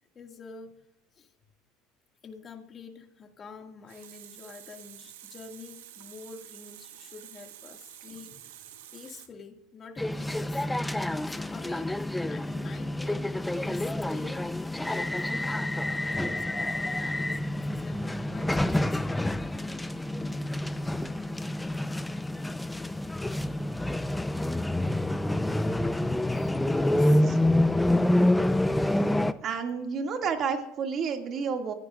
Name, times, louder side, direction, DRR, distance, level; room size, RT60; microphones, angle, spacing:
voice 1, 0.2-0.8 1.1-1.3 2.2-10.7 11.2-14.4 14.8-19.0 26.2-27.2, left 5 dB, 35° left, 3 dB, 2.1 m, -47 dB
Water tap faucet, 3.6-9.3, right 12 dB, 85° right, 1.3 m, -49 dB
sound 1, 10.0-29.3, left 1 dB, 5° left, 0.7 m, -27 dB
voice 2, 26.8-27.4 29.4-31.7, right 6 dB, 45° right, 4 dB, 2.3 m, -31 dB
25.0 x 15.0 x 2.5 m, 0.86 s
supercardioid pair, 90°, 0 cm